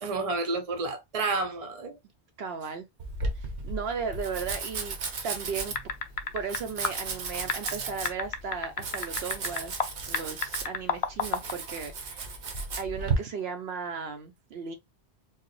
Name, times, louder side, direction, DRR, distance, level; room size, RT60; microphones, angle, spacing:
voice 1, 0.0-2.0 5.2-5.3, right 3 dB, 40° right, 0.7 m, -30 dB
voice 2, 2.4-2.9 3.3-5.0 5.2-5.8 6.3-9.8 10.1-12.4 12.8-14.8, right 5 dB, 70° right, 0.8 m, -36 dB
Domestic sounds home sounds, 3.0-13.2, right 4 dB, 85° right, 1.2 m, -35 dB
sound 1, 5.8-6.6 6.8-6.9 7.5-9.9 10.1-11.5, left 5 dB, 55° left, 0.4 m, -30 dB
4.6 x 2.1 x 3.1 m
omnidirectional pair, 1.1 m